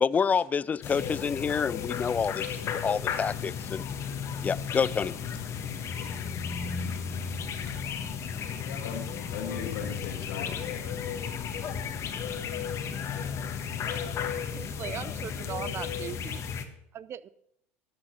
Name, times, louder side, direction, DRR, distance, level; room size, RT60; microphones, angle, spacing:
voice 1, 0.0-3.8 4.4-5.2, left 6 dB, 20° left, 0.3 m, -28 dB
sound 1, 0.8-16.6, left 7 dB, 45° left, 1.3 m, -34 dB
voice 2, 5.3-5.6 5.9-7.9 8.4-10.9, left 7 dB, 70° left, 2.0 m, -42 dB
voice 3, 14.6-16.4 16.9-17.3, right 9 dB, 40° right, 0.5 m, -39 dB
12.0 x 6.3 x 5.9 m
hypercardioid pair, 90°, 7 cm